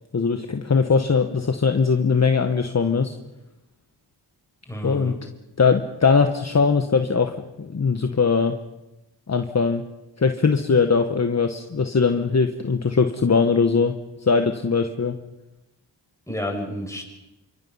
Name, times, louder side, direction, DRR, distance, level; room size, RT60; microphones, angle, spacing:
voice 1, 0.1-3.2 4.8-5.1 5.6-8.6 9.3-9.8 10.2-14.0 14.2-15.2, left 5 dB, 40° left, 7 dB, 1.2 m, -20 dB
voice 2, 4.7-5.2 16.3-17.0, equal, 5° left, 1 dB, 6.3 m, -30 dB
28.0 x 25.5 x 5.6 m, 0.97 s
wide cardioid pair, 100°, 43 cm